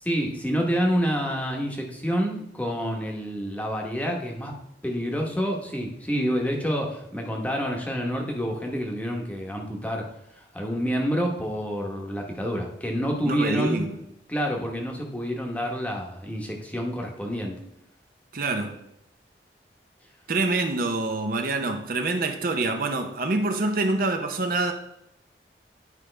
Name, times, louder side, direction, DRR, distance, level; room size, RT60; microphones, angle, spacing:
voice 1, 0.0-4.5 4.8-10.1 10.4-13.8 14.3-17.6, equal, 10° left, 1.0 m, -28 dB
voice 2, 13.2-14.0 18.3-18.8 20.3-24.7, right 2 dB, 50° right, 0.7 m, -26 dB
9.9 x 5.1 x 3.3 m
head